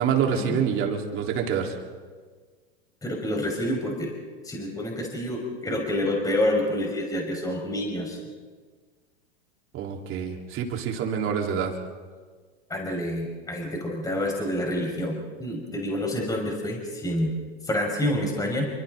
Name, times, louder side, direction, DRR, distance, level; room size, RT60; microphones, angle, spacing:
voice 1, 0.0-1.8 9.7-11.7, right 7 dB, 40° right, 1 dB, 4.0 m, -26 dB
voice 2, 3.0-4.1 4.4-8.2 12.7-17.3 17.6-18.7, left 1 dB, 10° left, 0 dB, 5.3 m, -28 dB
29.5 x 24.5 x 4.0 m, 1.5 s
hypercardioid pair, 115°, 34 cm